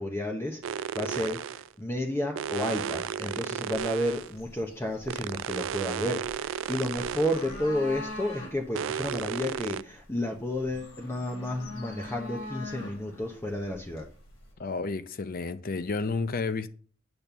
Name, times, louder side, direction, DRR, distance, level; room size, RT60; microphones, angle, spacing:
voice 1, 0.0-14.1, left 1 dB, 15° left, 1.0 m, -31 dB
sound 1, 0.6-1.7 2.4-4.3 5.1-7.6 8.7-9.8, right 8 dB, 70° right, 0.3 m, -34 dB
sound 2, 3.7-14.5, left 2 dB, 90° left, 3.7 m, -44 dB
voice 2, 14.6-16.7, left 3 dB, 45° left, 0.6 m, -31 dB
8.7 x 4.3 x 6.8 m
head